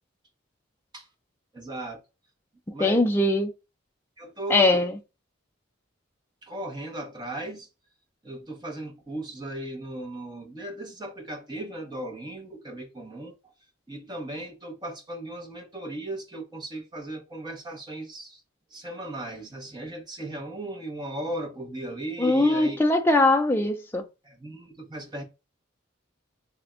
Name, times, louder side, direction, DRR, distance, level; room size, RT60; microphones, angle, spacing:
voice 1, 1.5-2.0 2.7-3.0 4.2-4.9 6.4-7.7 8.2-13.5 13.9-18.4 18.7-22.8 24.2-25.2, right 1 dB, 20° right, 0.8 m, -36 dB
voice 2, 2.8-3.5 4.5-4.9 22.2-24.1, left 2 dB, 10° left, 0.3 m, -21 dB
3.3 x 2.1 x 3.6 m
head